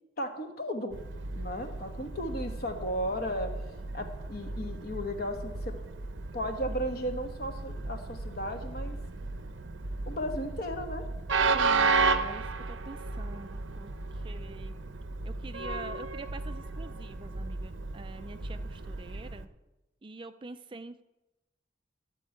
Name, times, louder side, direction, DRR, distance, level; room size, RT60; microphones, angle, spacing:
voice 1, 0.2-1.0 1.3-3.5 3.9-5.7 6.3-9.0 10.1-11.1, equal, 55° left, 5 dB, 1.2 m, -35 dB
Train, 0.9-19.5, right 4 dB, 85° right, 0.7 m, -34 dB
voice 2, 11.5-14.7 15.2-19.5 20.0-21.0, right 3 dB, 25° right, 10 dB, 0.4 m, -45 dB
12.5 x 4.6 x 7.8 m, 1.0 s
head